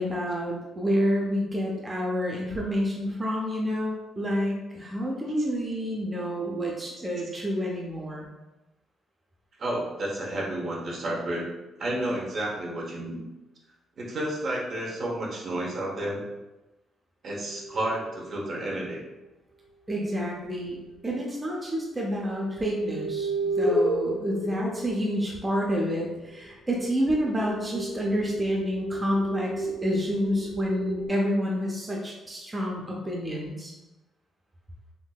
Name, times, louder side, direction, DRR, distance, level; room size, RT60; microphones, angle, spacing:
voice 1, 0.0-8.3 19.9-20.8 21.0-33.7, equal, 20° right, -3 dB, 0.6 m, -29 dB
voice 2, 9.6-11.5 11.8-13.2 14.0-16.2 17.2-19.0, right 1 dB, 55° right, -2 dB, 0.8 m, -31 dB
sound 1, 17.4-19.1 20.7-20.8 22.1-25.8 26.7-31.1, right 1 dB, 60° left, 1.3 m, -32 dB
3.6 x 2.6 x 2.3 m, 1.0 s
cardioid pair, 90°, 0 cm